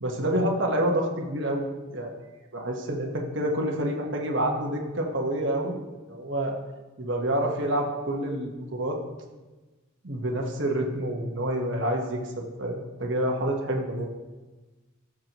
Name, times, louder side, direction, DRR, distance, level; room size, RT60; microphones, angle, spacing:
voice 1, 0.0-2.1 2.5-5.8 6.1-6.6 7.0-9.0 10.0-14.1, right 1 dB, 60° right, 1 dB, 1.3 m, -28 dB
13.5 x 6.2 x 3.0 m, 1.2 s
head